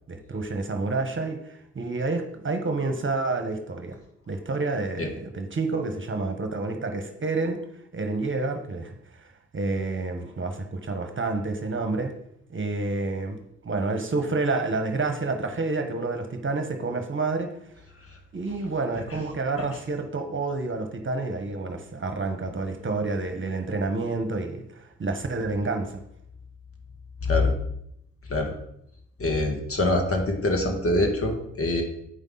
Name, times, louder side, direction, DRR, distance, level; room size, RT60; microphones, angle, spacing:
voice 1, 0.1-4.0 4.3-7.6 7.9-12.1 12.5-17.5 18.3-26.0, right 3 dB, 40° right, 6 dB, 1.2 m, -29 dB
voice 2, 27.2-27.5 28.3-28.5 29.2-31.8, left 2 dB, 45° left, 4 dB, 1.8 m, -24 dB
8.1 x 5.3 x 4.0 m, 0.75 s
supercardioid pair, 50°, 32 cm